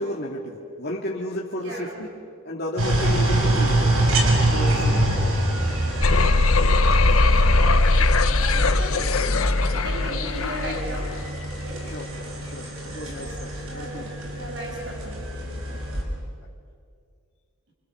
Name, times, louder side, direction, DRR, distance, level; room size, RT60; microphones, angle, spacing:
voice 1, 0.0-2.1 2.4-3.9 4.5-5.2 11.8-12.1 12.4-14.1 16.0-16.1, equal, 50° left, -3 dB, 2.4 m, -33 dB
voice 2, 1.5-2.0 5.0-5.4 5.7-5.8 6.6-7.1 7.4-11.2 11.6-11.9 13.0-15.8, right 1 dB, 55° right, 0 dB, 7.3 m, -38 dB
sound 1, 2.8-16.0, right 1 dB, 90° right, 5.8 m, -26 dB
sound 2, 6.0-11.1, left 2 dB, 85° left, 1.2 m, -20 dB
28.5 x 27.5 x 7.0 m, 2.2 s
head